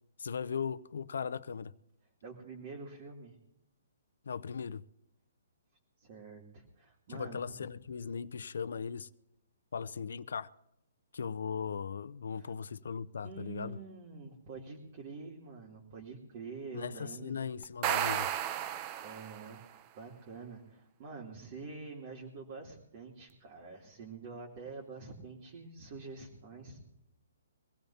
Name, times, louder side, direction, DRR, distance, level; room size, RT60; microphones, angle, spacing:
voice 1, 0.2-1.7 4.3-4.8 7.1-9.1 9.7-10.5 11.1-13.8 16.7-18.3, left 6 dB, 75° left, 0.6 m, -38 dB
voice 2, 2.2-3.4 6.0-7.6 12.3-12.5 13.2-17.4 19.0-19.6 19.9-26.9, right 4 dB, 45° right, 2.9 m, -47 dB
sound 1, 17.6-19.6, right 10 dB, 30° right, 0.6 m, -33 dB
24.0 x 16.0 x 2.8 m
hypercardioid pair, 150°, 0 cm